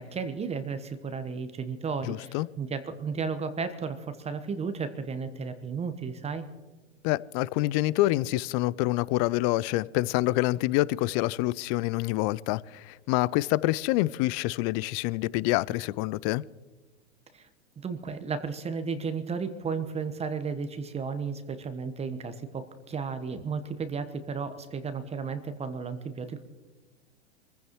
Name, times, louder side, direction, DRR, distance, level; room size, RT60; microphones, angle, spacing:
voice 1, 0.0-6.5 17.3-17.5 17.8-26.4, right 5 dB, 20° right, 1.1 m, -34 dB
voice 2, 2.1-2.5 7.0-16.4, left 18 dB, 35° left, 0.4 m, -27 dB
26.5 x 15.5 x 3.1 m
figure-of-eight pair, 95°, 34 cm